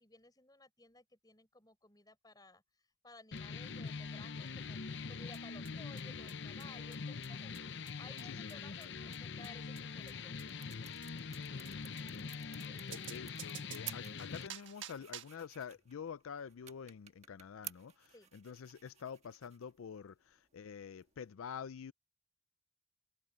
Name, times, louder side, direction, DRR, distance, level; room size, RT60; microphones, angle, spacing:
voice 1, 0.0-4.8 5.1-7.7 8.0-10.5 18.1-18.3, left 2 dB, 20° left, 4.5 m, -58 dB
sound 1, 3.3-14.5, left 5 dB, 60° left, 0.7 m, -44 dB
sound 2, 5.3-5.4 5.6-5.7 6.0-6.1 6.3-6.4 6.6-6.7 6.9-7.0 7.2-7.3 7.5-7.6 7.9-8.0 8.2-8.3 8.5-8.6 8.8-8.9 9.1-9.2 9.4-9.5 9.8-9.9 10.1-10.2 10.4-10.5 10.7-10.8 11.0-11.1 11.3-11.4 11.6-11.7 12.0-12.1 12.3-12.4 12.6-12.7 12.9-15.4, right 11 dB, 65° right, 1.5 m, -50 dB
sound 3, 9.8-21.3, right 10 dB, 30° right, 1.5 m, -55 dB
voice 2, 11.4-21.9, left 7 dB, 90° left, 0.4 m, -48 dB
head